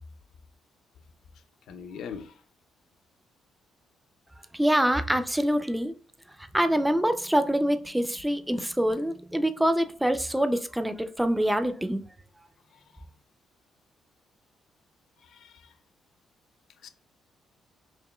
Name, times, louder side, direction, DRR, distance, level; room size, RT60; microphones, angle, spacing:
voice 1, 1.7-2.4 12.7-13.0 15.2-15.7 16.8-16.9, left 6 dB, 75° left, 0.4 m, -42 dB
voice 2, 4.5-5.9 6.4-12.0, equal, 5° right, 0.4 m, -25 dB
4.8 x 2.9 x 2.2 m
cardioid pair, 120°, 0 cm